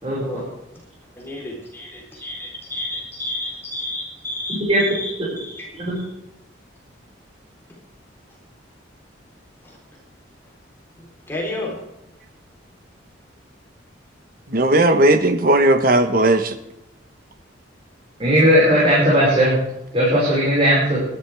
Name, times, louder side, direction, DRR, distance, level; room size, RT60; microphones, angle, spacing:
voice 1, 0.0-0.8 1.2-5.7 9.6-9.8 11.0-11.8, left 1 dB, 10° left, -3 dB, 3.8 m, -32 dB
voice 2, 14.5-16.5, right 1 dB, 45° right, 8 dB, 1.3 m, -16 dB
voice 3, 18.2-19.6 19.9-21.0, equal, 30° right, -6 dB, 5.4 m, -17 dB
20.5 x 12.0 x 3.5 m, 0.88 s
head